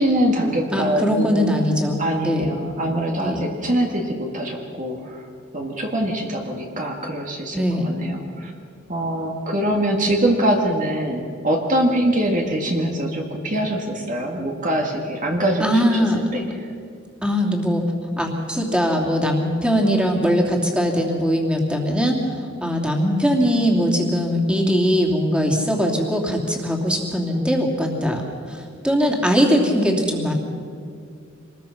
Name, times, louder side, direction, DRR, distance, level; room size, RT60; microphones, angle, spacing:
voice 1, 0.0-1.6 2.0-5.3 5.5-8.5 8.9-16.6, right 1 dB, 40° right, 1 dB, 2.0 m, -23 dB
voice 2, 0.7-2.6 3.2-3.4 7.5-7.9 15.6-16.2 17.2-17.8 18.2-22.3 22.6-30.3, equal, 5° right, 0 dB, 2.8 m, -21 dB
26.0 x 20.5 x 5.9 m, 2.3 s
head